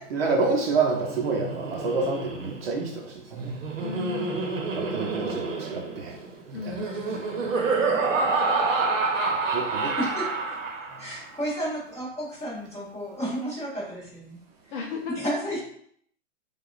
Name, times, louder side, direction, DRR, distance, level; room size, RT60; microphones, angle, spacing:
voice 1, 0.1-3.5 4.8-6.2 6.7-6.9 7.4-7.6 9.5-9.9, right 4 dB, 50° right, 1 dB, 0.7 m, -28 dB
Laughter, 0.7-11.2, right 4 dB, 90° right, 0.9 m, -28 dB
voice 2, 3.8-4.4 6.5-7.0 14.7-15.6, left 6 dB, 45° left, 0 dB, 0.6 m, -36 dB
voice 3, 10.0-10.3 11.0-14.4 15.2-15.6, equal, 10° left, -8 dB, 1.3 m, -32 dB
4.8 x 2.4 x 2.5 m, 0.65 s
hypercardioid pair, 155°, 37 cm